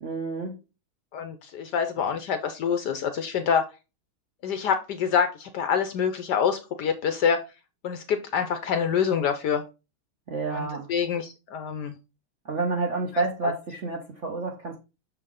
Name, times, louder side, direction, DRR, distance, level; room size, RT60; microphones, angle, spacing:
voice 1, 0.0-0.6 10.3-10.9 12.4-14.8, right 3 dB, 50° right, 0.9 m, -29 dB
voice 2, 1.1-3.7 4.4-7.4 7.8-9.6 10.5-12.0 13.1-13.2, left 7 dB, 70° left, 1.1 m, -26 dB
6.7 x 4.6 x 3.7 m
omnidirectional pair, 2.3 m